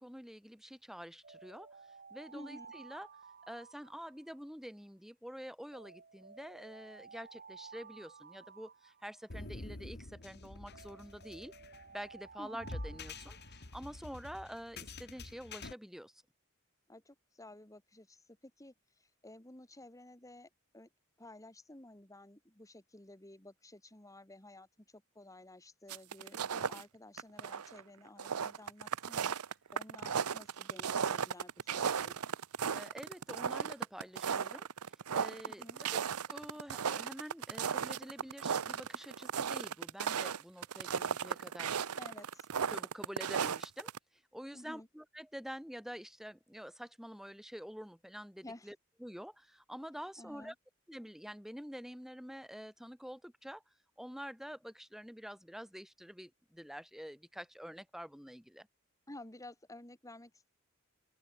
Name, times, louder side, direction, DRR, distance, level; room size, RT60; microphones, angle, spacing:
voice 1, 0.0-1.7 2.1-3.1 3.5-11.5 11.9-16.2 32.7-36.0 36.3-41.8 42.7-43.9 44.3-50.5 50.9-53.6 54.0-58.7, equal, ahead, 4.7 m, -47 dB
Alarm, 1.2-4.6 5.7-9.6 10.7-14.0, right 5 dB, 45° right, 6.4 m, -55 dB
voice 2, 2.3-2.7 12.4-12.7 16.9-20.9 21.2-32.2 35.4-35.8 42.0-42.5 44.5-44.9 48.4-48.7 50.2-50.5 59.1-60.5, left 1 dB, 15° left, 2.5 m, -53 dB
sound 1, 9.3-15.7, left 2 dB, 50° left, 2.1 m, -47 dB
sound 2, 25.9-26.8 27.2-27.8 28.1-44.0, right 7 dB, 85° right, 0.7 m, -35 dB
open air
head